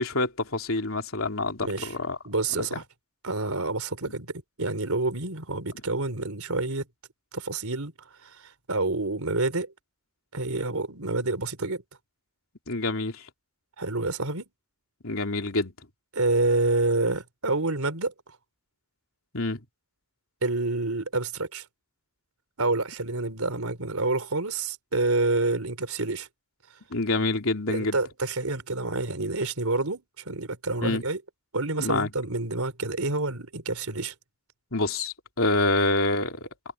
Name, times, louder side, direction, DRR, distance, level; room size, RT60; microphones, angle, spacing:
voice 1, 0.0-2.2 2.7-2.8 4.1-4.2 12.7-13.2 15.0-15.7 19.3-19.6 26.9-28.0 30.8-31.0 31.8-32.1 34.7-36.5, left 2 dB, 70° left, 3.5 m, -27 dB
voice 2, 1.6-1.9 2.3-2.8 3.2-6.9 7.3-7.9 8.2-8.3 8.7-9.7 10.3-11.8 13.8-14.5 16.1-18.1 20.4-21.6 22.6-26.3 27.7-31.2 31.5-34.1, right 2 dB, 80° right, 3.7 m, -28 dB
head